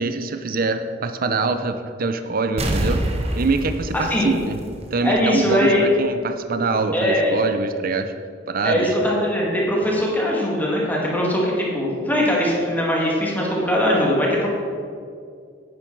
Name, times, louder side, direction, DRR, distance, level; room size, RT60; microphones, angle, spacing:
voice 1, 0.0-3.0 3.3-4.6 4.9-8.1 8.5-8.9, right 3 dB, 50° right, 8 dB, 0.6 m, -24 dB
sound 1, 2.6-5.2 5.5-5.6, right 1 dB, 35° right, 1.1 m, -26 dB
voice 2, 3.9-4.3 5.0-5.8 6.9-7.4 8.6-14.5, equal, 10° left, -4 dB, 2.2 m, -21 dB
10.5 x 9.2 x 4.7 m, 2.3 s
head